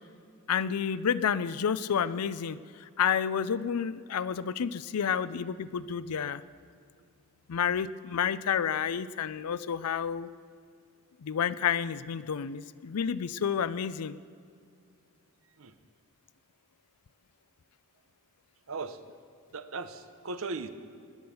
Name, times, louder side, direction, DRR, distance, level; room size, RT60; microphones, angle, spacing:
voice 1, 0.5-6.4 7.5-10.3 11.2-14.2, left 7 dB, 90° left, 15 dB, 0.5 m, -30 dB
voice 2, 19.5-20.7, right 3 dB, 65° right, 11 dB, 0.9 m, -37 dB
20.0 x 9.6 x 6.9 m, 2.2 s
head